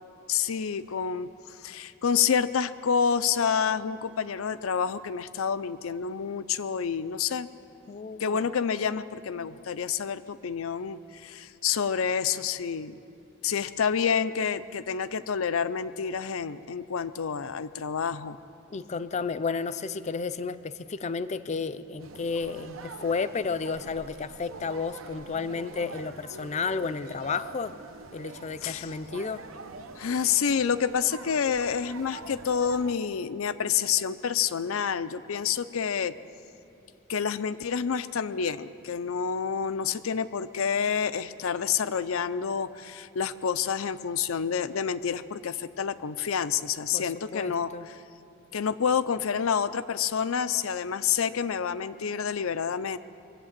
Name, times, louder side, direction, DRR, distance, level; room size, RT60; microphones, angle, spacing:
voice 1, 0.3-7.5 8.2-13.0 13.4-18.4 28.6-28.9 30.0-36.1 37.1-47.7 48.5-53.0, left 7 dB, 85° left, 14 dB, 0.5 m, -28 dB
voice 2, 7.9-8.5 18.7-27.8 28.1-29.4 46.9-47.9, left 4 dB, 35° left, 13 dB, 0.4 m, -32 dB
sound 1, 22.0-33.0, right 3 dB, 80° right, 0.8 m, -44 dB
22.5 x 8.5 x 7.4 m, 2.7 s
head